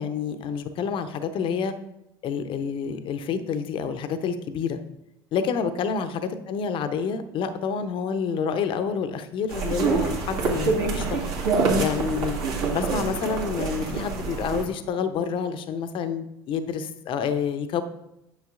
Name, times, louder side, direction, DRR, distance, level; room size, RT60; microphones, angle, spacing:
voice 1, 0.0-1.7 2.2-4.8 5.3-11.2 11.8-12.4 12.7-17.8, left 6 dB, 40° left, 9 dB, 0.7 m, -28 dB
sound 1, 9.5-14.6, right 4 dB, 60° right, 1.8 m, -26 dB
9.6 x 6.3 x 2.5 m, 0.85 s
figure-of-eight pair, 70°, 13 cm